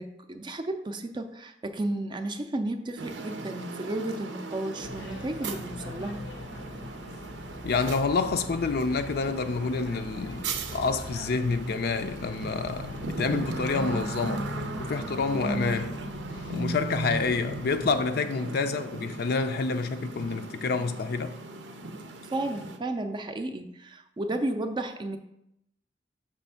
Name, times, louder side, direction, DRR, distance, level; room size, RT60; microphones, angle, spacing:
voice 1, 0.0-6.2 22.3-25.2, right 1 dB, 25° right, 0.4 m, -33 dB
sound 1, 3.0-22.8, right 3 dB, 85° right, 0.6 m, -38 dB
sound 2, 4.8-18.0, left 1 dB, 85° left, 0.9 m, -41 dB
voice 2, 7.6-14.4 14.8-15.9 16.5-21.4, left 4 dB, 60° left, 0.4 m, -28 dB
6.1 x 3.3 x 5.6 m
head